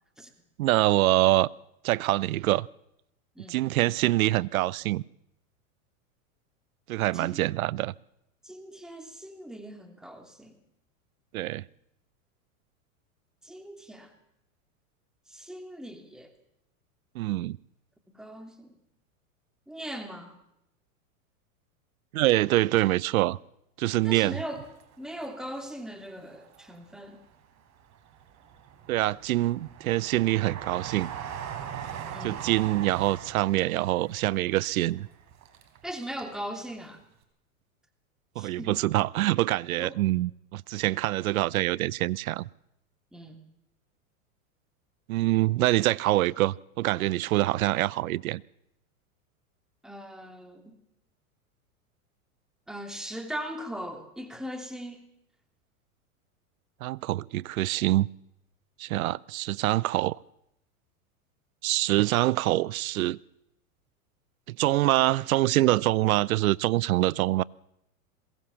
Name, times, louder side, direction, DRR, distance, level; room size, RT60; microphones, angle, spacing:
voice 1, 0.6-1.5 1.8-2.7 3.5-5.0 6.9-7.9 11.3-11.6 17.1-17.6 22.1-23.4 23.8-24.4 28.9-31.1 32.2-35.1 38.4-42.4 45.1-48.4 56.8-58.1 58.8-60.2 61.6-63.2 64.5-67.4, right 16 dB, 75° right, 0.7 m, -25 dB
voice 2, 8.4-10.5 13.4-14.1 15.3-16.3 18.1-18.7 19.7-20.4 24.0-24.6 25.0-27.2 32.1-32.5 35.8-37.0 38.4-38.8 39.8-40.0 43.1-43.4 49.8-50.8 52.7-55.0, equal, ahead, 2.7 m, -39 dB
Train, 24.4-25.6 26.1-27.0 27.6-36.3 36.6-36.7, right 9 dB, 40° right, 3.9 m, -41 dB
22.0 x 17.5 x 7.2 m
hypercardioid pair, 115°, 42 cm